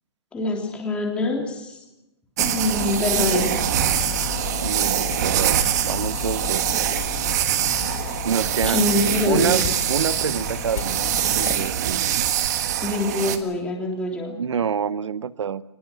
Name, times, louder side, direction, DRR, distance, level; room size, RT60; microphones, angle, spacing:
voice 1, 0.3-1.8 2.4-3.5 7.7-7.9 8.7-9.6 12.8-14.3, left 2 dB, 5° left, 0 dB, 3.3 m, -24 dB
sound 1, 2.4-13.4, right 10 dB, 35° right, 1.6 m, -24 dB
sound 2, 2.6-11.7, left 12 dB, 35° left, 1.2 m, -34 dB
voice 2, 4.6-6.8 8.2-8.8 9.3-9.6 9.9-12.0 14.4-15.6, right 7 dB, 80° right, 16 dB, 1.1 m, -27 dB
22.5 x 20.0 x 7.6 m, 0.95 s
hypercardioid pair, 170°, 15 cm